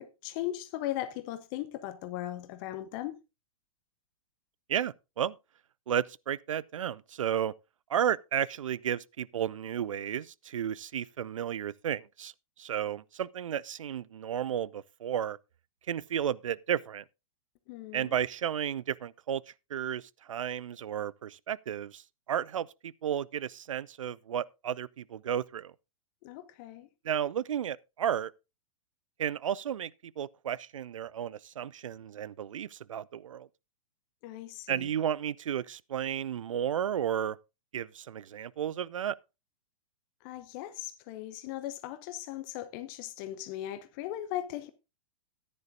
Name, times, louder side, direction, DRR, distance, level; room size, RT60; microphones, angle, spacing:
voice 1, 0.0-3.2 17.7-18.1 26.2-26.9 34.2-34.9 40.2-44.7, left 14 dB, 35° left, 0.8 m, -38 dB
voice 2, 4.7-5.4 5.9-7.5 7.9-12.3 12.6-15.4 15.9-17.0 17.9-19.4 19.7-22.0 22.3-25.7 27.0-28.3 29.2-33.5 34.7-37.4 37.7-39.2, right 9 dB, 65° right, 0.5 m, -33 dB
14.5 x 10.0 x 2.6 m
figure-of-eight pair, 105°, 18 cm